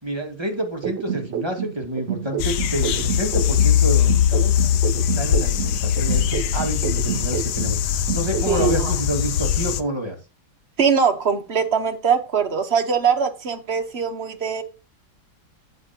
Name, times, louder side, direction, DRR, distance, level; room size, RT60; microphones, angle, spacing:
voice 1, 0.0-4.6 4.9-10.2, right 1 dB, 15° right, 1.9 m, -28 dB
sound 1, 0.8-3.8 4.1-7.8 8.1-8.8, right 9 dB, 80° right, 0.6 m, -29 dB
sound 2, 2.4-9.8, left 9 dB, 70° left, 1.2 m, -21 dB
voice 2, 8.5-8.9 10.8-14.6, right 6 dB, 40° right, 1.2 m, -22 dB
16.0 x 5.5 x 2.9 m
omnidirectional pair, 1.9 m